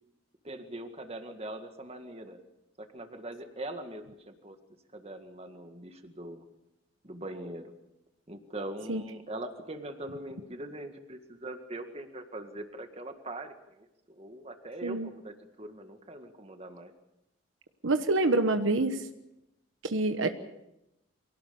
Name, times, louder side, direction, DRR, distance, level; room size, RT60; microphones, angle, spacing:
voice 1, 0.4-2.4 2.8-4.6 4.9-6.5 7.0-7.7 8.3-16.9, right 1 dB, 30° right, 6 dB, 2.0 m, -42 dB
voice 2, 17.8-19.1 19.8-20.3, right 2 dB, 75° right, 8 dB, 1.2 m, -26 dB
24.0 x 17.5 x 7.0 m, 0.87 s
head